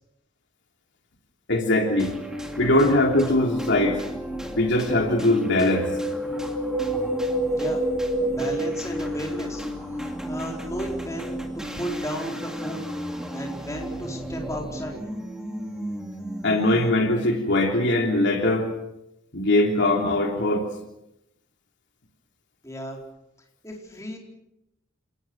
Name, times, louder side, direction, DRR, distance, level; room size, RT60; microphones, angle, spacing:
voice 1, 1.5-2.1 2.6-4.0 4.6-5.9 16.4-18.7 19.3-20.7, left 1 dB, 60° left, 2 dB, 3.2 m, -21 dB
sound 1, 2.0-17.1, equal, 5° right, 2.4 m, -34 dB
Wind, 5.4-9.7 10.0-10.1, right 1 dB, 55° right, 5.0 m, -28 dB
voice 2, 7.5-7.8 8.3-9.7 10.0-12.9 13.3-15.0 22.6-23.0 23.6-24.2, equal, 15° left, 0 dB, 4.6 m, -34 dB
28.5 x 19.0 x 6.4 m, 0.85 s
head